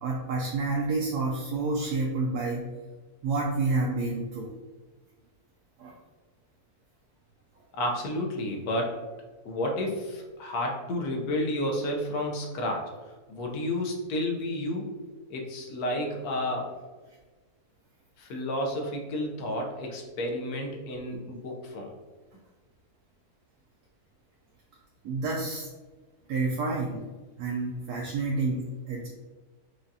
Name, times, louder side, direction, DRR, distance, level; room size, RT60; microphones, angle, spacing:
voice 1, 0.0-2.7 3.2-4.5 5.8-5.9 25.0-25.7 26.3-27.0 27.4-29.1, right 3 dB, 85° right, -2 dB, 1.1 m, -29 dB
voice 2, 7.7-9.0 9.4-12.9 13.3-14.9 15.3-16.7 18.2-21.9, left 1 dB, 80° left, 1 dB, 1.2 m, -31 dB
4.9 x 2.4 x 2.7 m, 1.3 s
omnidirectional pair, 1.6 m